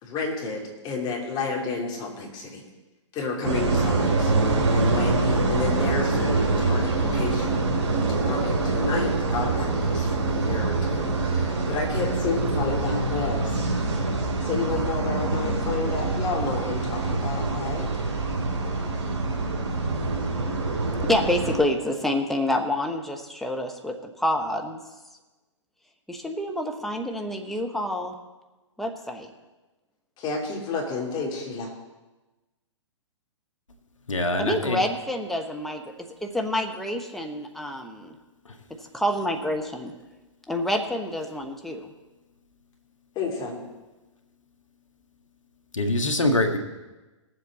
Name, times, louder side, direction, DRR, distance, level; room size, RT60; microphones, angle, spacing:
voice 1, 0.0-2.6 3.1-7.6 8.1-13.6 14.4-17.9 30.2-31.7 43.1-43.6, left 4 dB, 30° left, 0 dB, 2.7 m, -31 dB
sound 1, 3.4-21.6, right 3 dB, 60° right, 3.2 m, -25 dB
voice 2, 21.0-24.8 26.1-28.1 28.8-29.3 34.4-35.8 36.2-38.1 38.9-39.9 40.5-41.9, left 1 dB, ahead, 3 dB, 0.9 m, -27 dB
voice 3, 34.1-34.8 45.7-46.6, left 1 dB, 85° left, 6 dB, 1.6 m, -24 dB
18.5 x 7.6 x 4.1 m, 1.1 s
hypercardioid pair, 125°, 16 cm